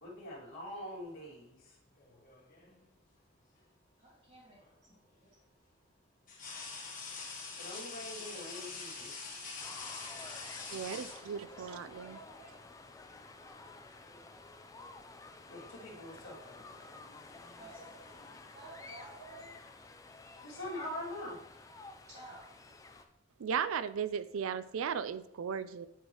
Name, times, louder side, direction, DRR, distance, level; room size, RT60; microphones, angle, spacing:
voice 1, 0.0-1.8 7.6-9.1 15.5-16.5 20.4-21.4, left 1 dB, 75° left, -6 dB, 2.3 m, -43 dB
sound 1, 2.0-2.8 4.6-4.7 6.3-11.7 12.9-13.1 13.5-14.3 14.6-14.9 15.8-18.4, left 4 dB, 40° left, 1.5 m, -46 dB
voice 2, 4.0-4.6 4.9-5.0 5.2-5.3 11.4-12.5 17.6-19.6 22.1-22.4, right 2 dB, 35° right, -9 dB, 2.0 m, -53 dB
sound 2, 9.6-23.0, left 3 dB, 15° left, 0.4 m, -52 dB
voice 3, 10.7-12.2 23.4-25.9, right 7 dB, 85° right, 14 dB, 0.4 m, -36 dB
9.1 x 4.7 x 3.0 m, 0.82 s
head